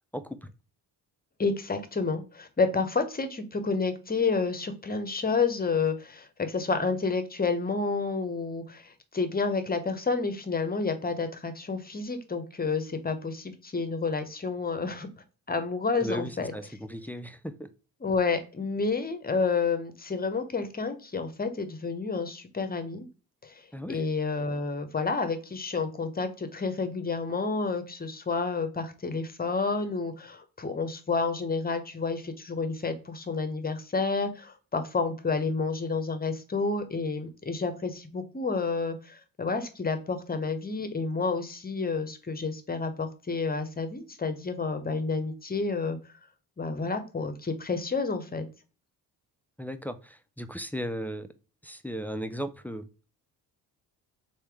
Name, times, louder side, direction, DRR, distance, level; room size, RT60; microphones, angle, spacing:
voice 1, 0.1-0.5 16.0-17.7 23.7-24.0 49.6-51.3 51.6-52.9, equal, 5° left, 10 dB, 0.3 m, -36 dB
voice 2, 1.4-15.1 15.5-16.5 18.0-23.1 23.4-23.6 23.9-46.0 46.6-48.4, left 4 dB, 20° left, 9 dB, 0.8 m, -30 dB
3.4 x 2.7 x 4.6 m, 0.34 s
supercardioid pair, 65°, 41 cm